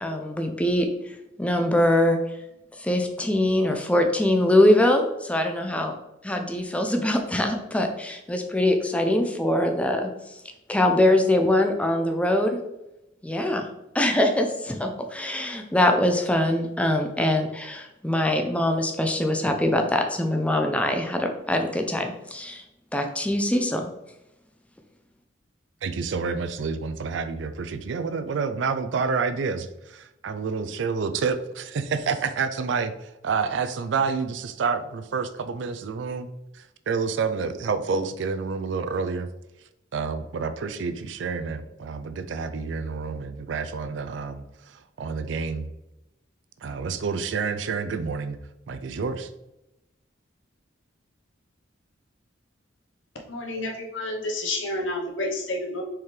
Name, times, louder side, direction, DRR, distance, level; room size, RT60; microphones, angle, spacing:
voice 1, 0.0-0.9 1.4-2.2 2.8-5.9 6.2-10.1 10.7-12.6 13.2-13.7 13.9-22.6 22.9-23.9, left 1 dB, 5° left, 4 dB, 0.5 m, -23 dB
voice 2, 25.8-32.9 33.2-36.3 36.9-39.3 39.9-44.4 45.0-45.7 46.6-48.4 48.7-49.3, right 5 dB, 65° right, 10 dB, 0.4 m, -28 dB
voice 3, 53.3-55.8, left 2 dB, 80° left, 1 dB, 1.0 m, -30 dB
4.4 x 3.7 x 3.2 m, 0.91 s
head